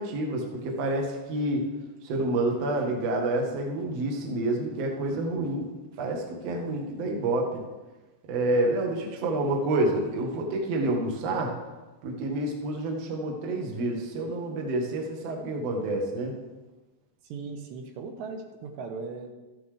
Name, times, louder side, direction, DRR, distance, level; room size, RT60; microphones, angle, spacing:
voice 1, 0.0-1.6 2.0-5.7 6.0-7.5 8.3-11.5 12.0-16.3, right 2 dB, 60° right, 1 dB, 1.8 m, -28 dB
voice 2, 17.2-19.3, right 4 dB, 80° right, 4 dB, 3.0 m, -38 dB
13.5 x 9.6 x 3.3 m, 1.1 s
omnidirectional pair, 5.1 m